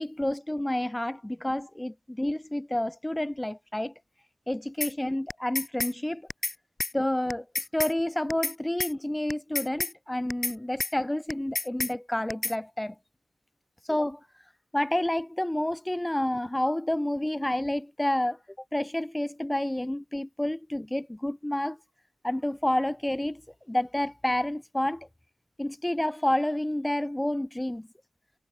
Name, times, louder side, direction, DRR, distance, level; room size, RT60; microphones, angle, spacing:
voice 1, 0.0-3.9 4.5-6.3 6.9-7.4 7.7-12.9 13.9-14.2 14.7-18.4 18.7-21.8 22.2-23.4 23.7-25.1 25.6-27.9, left 1 dB, 10° left, 0.9 m, -29 dB
sound 1, 4.8-4.9 5.3-5.9 6.3-6.5 6.8-6.9 7.3-7.9 8.3-8.5 8.8-8.9 9.3-9.9 10.3-10.5 10.8-10.9 11.3-11.9 12.3-12.5, left 3 dB, 40° left, 2.1 m, -30 dB
wide cardioid pair, 80°, 0 cm